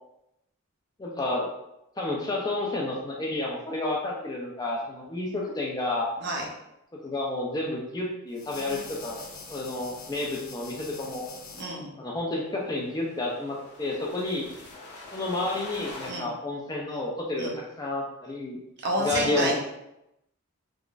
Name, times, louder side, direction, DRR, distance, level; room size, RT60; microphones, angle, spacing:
voice 1, 1.0-1.5 2.0-6.1 7.0-9.2 9.5-11.3 12.0-14.5 15.1-18.6 19.0-19.5, left 2 dB, 15° left, -2 dB, 0.3 m, -30 dB
sound 1, 8.3-11.6 12.8-16.1, left 3 dB, 85° left, 0.8 m, -43 dB
voice 2, 11.5-11.9 16.1-16.3 17.4-17.6 18.8-19.6, right 1 dB, 50° right, -2 dB, 0.7 m, -29 dB
3.7 x 2.4 x 2.3 m, 0.85 s
head